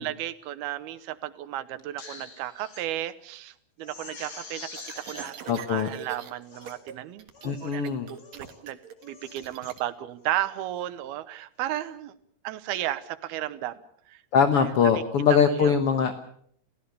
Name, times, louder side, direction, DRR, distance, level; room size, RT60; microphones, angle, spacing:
voice 1, 0.0-12.1 12.4-13.8 14.1-14.2 15.4-15.7, right 13 dB, 80° right, 14 dB, 2.9 m, -34 dB
Crying sobbing, 1.8-2.8 3.3-3.4 3.8-5.3 6.0-6.1 6.4-6.8 7.3-7.7 8.2-8.6 9.0-9.7 10.2-10.5, left 3 dB, 30° left, 2.5 m, -45 dB
sound 1, 4.7-6.3 6.6-6.9 7.2-9.8, right 7 dB, 55° right, 2.5 m, -43 dB
voice 2, 5.5-5.9 7.4-8.1 14.3-16.1, left 6 dB, 65° left, 8 dB, 1.4 m, -22 dB
29.0 x 16.0 x 6.9 m, 0.65 s
omnidirectional pair, 4.4 m